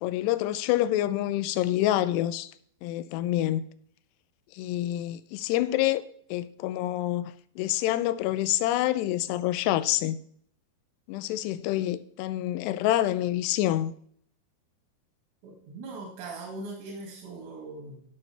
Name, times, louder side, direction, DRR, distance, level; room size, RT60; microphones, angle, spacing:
voice 1, 0.0-2.5 2.8-3.6 4.5-6.0 6.3-10.2 11.1-13.9, left 14 dB, 85° left, 2.7 m, -27 dB
voice 2, 15.4-18.0, right 3 dB, 85° right, 4.2 m, -40 dB
15.0 x 6.5 x 3.3 m
omnidirectional pair, 4.9 m